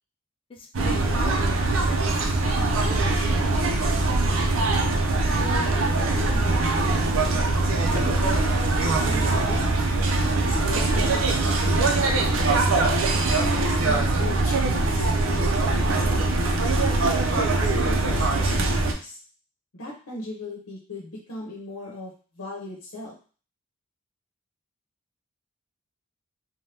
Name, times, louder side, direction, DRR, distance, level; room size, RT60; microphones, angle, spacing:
voice 1, 0.5-2.5 2.8-3.6, left 2 dB, 25° left, 2 dB, 0.3 m, -41 dB
sound 1, 0.7-18.9, right 2 dB, 75° right, 0.5 m, -22 dB
voice 2, 5.3-7.2 7.9-9.9 10.4-12.5 13.2-16.6 17.3-19.2 19.8-23.2, left 2 dB, 85° left, -2 dB, 0.8 m, -37 dB
2.7 x 2.2 x 3.3 m, 0.38 s
head